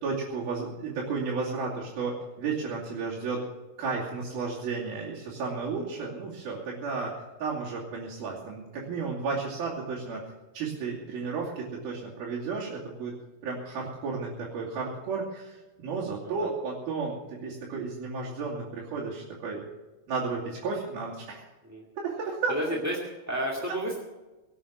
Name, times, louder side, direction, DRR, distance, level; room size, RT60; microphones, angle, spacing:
voice 1, 0.0-3.4 3.8-7.1 7.4-10.2 10.5-13.1 13.4-19.6 20.1-21.4 22.0-22.5, right 4 dB, 75° right, -5 dB, 4.5 m, -33 dB
voice 2, 22.5-24.0, equal, 5° right, -3 dB, 1.2 m, -31 dB
18.5 x 8.4 x 7.4 m, 1.1 s
omnidirectional pair, 4.3 m